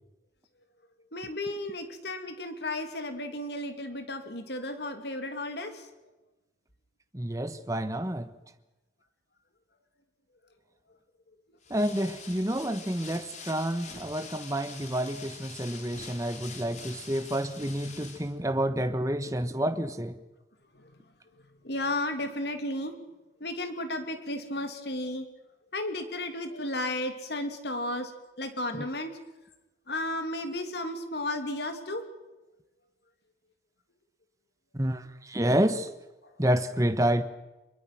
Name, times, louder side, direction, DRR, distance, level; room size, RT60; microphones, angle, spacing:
voice 1, 1.1-5.9 20.7-20.9 21.6-23.0 23.4-25.3 25.7-28.1 28.4-29.1 29.9-32.0 36.2-36.3, left 1 dB, 60° left, 7 dB, 2.8 m, -33 dB
voice 2, 7.1-8.3 11.7-20.2 28.8-28.9 34.7-35.9 36.4-37.2, right 1 dB, 15° right, 10 dB, 1.2 m, -29 dB
sound 1, 11.6-18.3, left 5 dB, 40° left, 3.3 m, -45 dB
25.5 x 22.0 x 6.1 m, 1.1 s
head